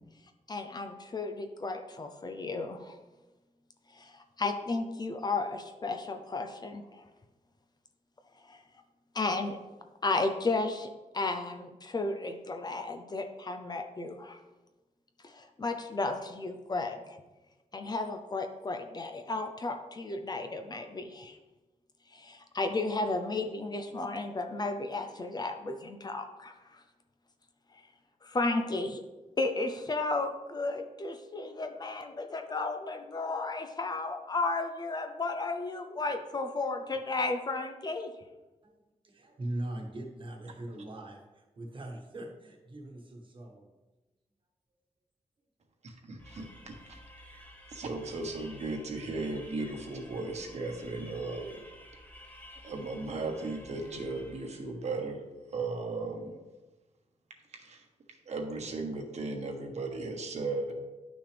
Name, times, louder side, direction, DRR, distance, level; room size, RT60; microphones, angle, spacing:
voice 1, 0.5-3.0 3.9-7.1 8.5-8.6 9.1-9.6 10.0-14.4 15.2-17.2 17.7-21.4 22.1-26.8 28.2-29.0 29.4-38.1, left 3 dB, 30° left, 6 dB, 0.6 m, -34 dB
voice 2, 39.0-43.7, right 1 dB, 40° right, 1 dB, 1.4 m, -41 dB
voice 3, 45.8-51.6 52.6-55.2 55.5-56.4 57.5-57.8 58.2-60.7, right 3 dB, 60° right, 2 dB, 1.3 m, -36 dB
sound 1, 46.2-54.8, equal, 10° left, 1.0 m, -52 dB
11.0 x 6.1 x 3.4 m, 1.1 s
wide cardioid pair, 165°, 13 cm